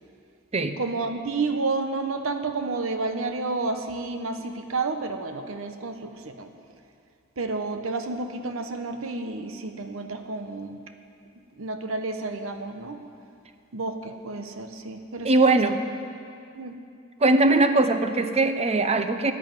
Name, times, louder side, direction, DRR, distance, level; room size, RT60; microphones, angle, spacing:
voice 1, 0.6-6.5 7.4-10.8 11.6-13.0 13.7-15.8 16.5-16.8, right 3 dB, 75° right, 7 dB, 1.0 m, -30 dB
voice 2, 15.2-15.8 17.2-19.3, right 2 dB, 30° right, 9 dB, 0.7 m, -20 dB
10.5 x 10.0 x 9.0 m, 2.4 s
head